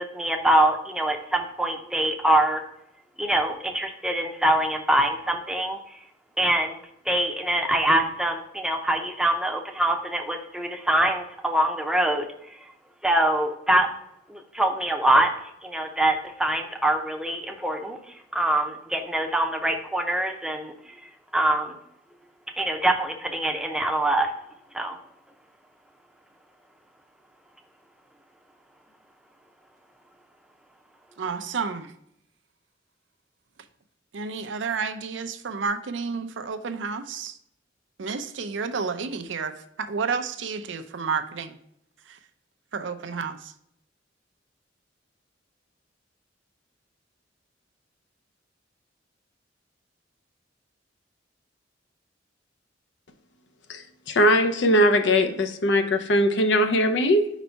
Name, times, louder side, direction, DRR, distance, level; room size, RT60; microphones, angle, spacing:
voice 1, 0.0-2.6 3.2-6.0 6.4-6.8 7.1-12.6 13.0-13.9 14.3-15.3 15.6-20.7 21.3-21.7 22.6-24.3 24.7-25.0, right 1 dB, 5° right, 0.6 m, -24 dB
voice 2, 31.2-31.9 34.1-37.3 38.0-41.6 42.7-43.4, right 5 dB, 80° right, 0.5 m, -30 dB
voice 3, 53.7-57.3, equal, 70° left, 0.6 m, -20 dB
5.3 x 4.0 x 4.4 m
head